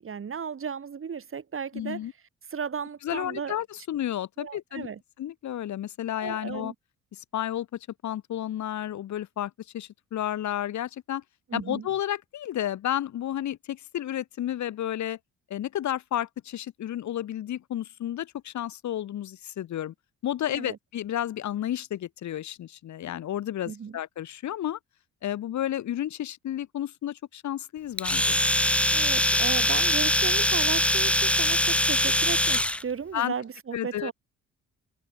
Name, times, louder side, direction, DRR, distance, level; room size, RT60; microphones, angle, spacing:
voice 1, 0.0-2.0 2.5-3.6 4.4-5.0 6.2-6.7 11.5-11.9 20.4-20.8 23.7-24.0 28.9-34.1, right 6 dB, 45° right, 5.9 m, -35 dB
voice 2, 1.7-2.1 3.0-4.9 5.2-6.7 7.1-7.7 8.0-11.2 11.5-15.2 15.5-19.9 20.2-24.8 25.2-28.4 33.1-33.3 33.7-34.1, left 11 dB, 70° left, 2.1 m, -32 dB
Domestic sounds home sounds, 28.0-32.8, left 1 dB, 5° left, 0.7 m, -23 dB
cardioid pair, 90°, 30 cm